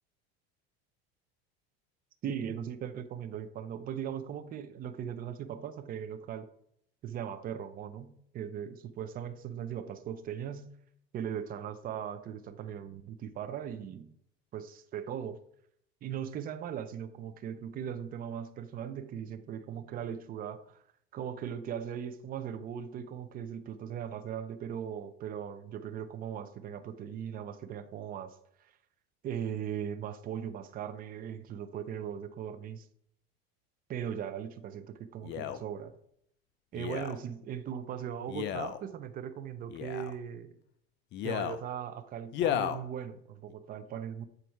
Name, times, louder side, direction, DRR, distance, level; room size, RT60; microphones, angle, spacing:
voice 1, 2.2-6.5 7.0-10.7 11.1-14.1 14.5-15.4 16.0-20.8 21.1-28.3 28.6-28.7 29.2-32.9 33.9-35.9 36.7-40.6 41.2-44.2, right 8 dB, 30° right, 10 dB, 0.6 m, -39 dB
Male speech man speaking, 35.2-35.6 36.7-37.2 38.3-38.8 39.7-40.2 41.1-41.6 42.3-42.8 43.5-43.6, left 10 dB, 35° left, 0.5 m, -33 dB
7.9 x 4.1 x 4.6 m, 0.71 s
supercardioid pair, 135°, 30 cm